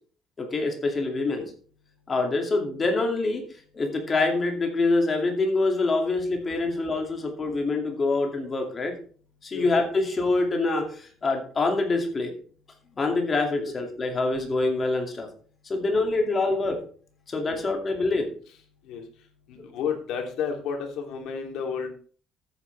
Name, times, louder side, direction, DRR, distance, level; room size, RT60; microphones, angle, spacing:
voice 1, 0.4-1.4 2.1-3.4 3.7-8.9 9.4-12.3 13.0-15.3 15.6-16.8 17.3-18.3, left 3 dB, 20° left, 3 dB, 2.5 m, -25 dB
voice 2, 19.5-21.9, left 6 dB, 60° left, 2 dB, 3.1 m, -32 dB
13.5 x 9.3 x 3.4 m, 0.44 s
cardioid pair, 175°, 0 cm